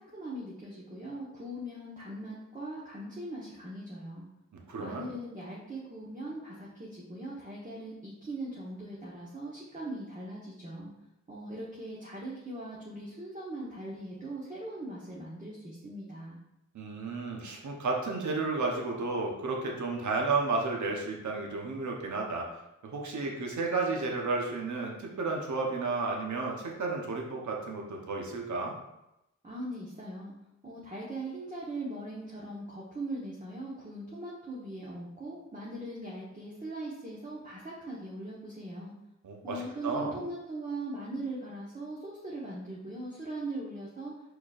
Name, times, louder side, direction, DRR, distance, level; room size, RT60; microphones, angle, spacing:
voice 1, 0.0-4.2 4.8-10.9 11.3-16.4 29.4-30.3 30.6-38.9 39.4-44.1, right 1 dB, 25° right, -6 dB, 1.1 m, -40 dB
voice 2, 4.5-5.1 16.7-22.5 22.8-28.8 39.2-40.1, right 3 dB, 70° right, 0 dB, 1.0 m, -32 dB
4.6 x 4.3 x 2.4 m, 0.89 s
cardioid pair, 60°, 30 cm